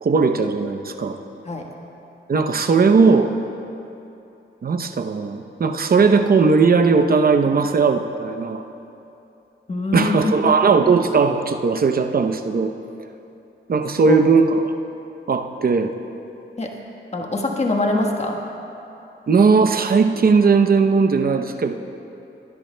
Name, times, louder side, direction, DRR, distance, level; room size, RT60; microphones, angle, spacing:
voice 1, 0.0-1.2 2.3-3.3 4.6-8.6 9.9-12.7 13.7-14.6 15.3-15.9 19.3-21.7, right 4 dB, 50° right, 7 dB, 0.7 m, -17 dB
voice 2, 9.7-10.5 14.0-14.2 16.6-16.7 17.1-18.4, left 2 dB, 35° left, 1 dB, 1.3 m, -23 dB
21.0 x 10.5 x 2.2 m, 2.9 s
cardioid pair, 65°, 20 cm